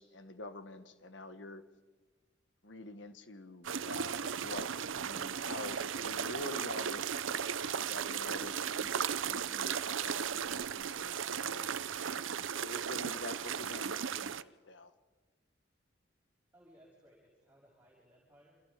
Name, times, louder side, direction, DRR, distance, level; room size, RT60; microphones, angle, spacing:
voice 1, 0.0-1.7 2.6-4.7 4.9-11.7 12.6-14.9, left 2 dB, 70° left, 10 dB, 1.6 m, -47 dB
sound 1, 3.6-14.4, right 7 dB, 90° right, 0.7 m, -36 dB
voice 2, 16.5-18.6, equal, 10° right, -6 dB, 6.8 m, -62 dB
29.5 x 27.5 x 5.2 m, 1.4 s
head